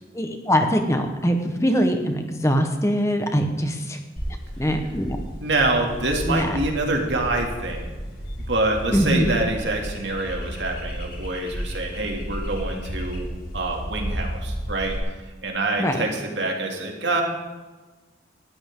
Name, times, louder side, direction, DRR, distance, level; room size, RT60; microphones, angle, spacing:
voice 1, 0.1-4.0 4.6-5.2 6.3-6.6 8.9-9.3 15.8-16.1, equal, 15° left, 5 dB, 1.2 m, -22 dB
sound 1, 4.2-15.0, equal, 50° left, 3.5 m, -33 dB
voice 2, 5.4-8.0 8.5-13.3 13.5-15.0 15.4-17.2, right 2 dB, 80° right, 1 dB, 2.7 m, -26 dB
19.0 x 13.0 x 3.8 m, 1.2 s
head